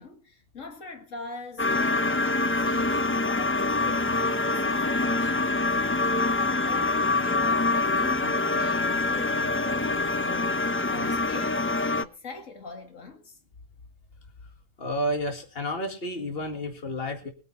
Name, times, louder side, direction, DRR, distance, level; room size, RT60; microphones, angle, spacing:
voice 1, 0.0-5.4 6.1-13.4, left 3 dB, 80° left, 2.3 m, -43 dB
sound 1, 1.6-12.0, left 2 dB, 20° left, 0.4 m, -25 dB
voice 2, 14.8-17.3, equal, 50° left, 2.3 m, -31 dB
22.5 x 9.0 x 4.2 m
omnidirectional pair, 1.3 m